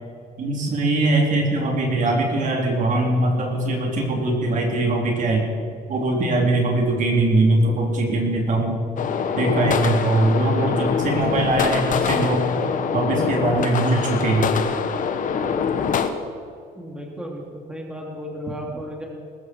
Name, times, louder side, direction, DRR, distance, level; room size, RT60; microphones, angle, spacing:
voice 1, 0.4-5.5 5.9-8.8 9.4-12.5 12.9-14.5, right 2 dB, 50° right, 0 dB, 3.8 m, -21 dB
sound 1, 9.0-16.1, left 6 dB, 50° left, 1.3 m, -24 dB
voice 2, 16.7-19.1, equal, 5° right, -1 dB, 3.0 m, -34 dB
21.0 x 13.5 x 4.8 m, 2.4 s
cardioid pair, 110°, 17 cm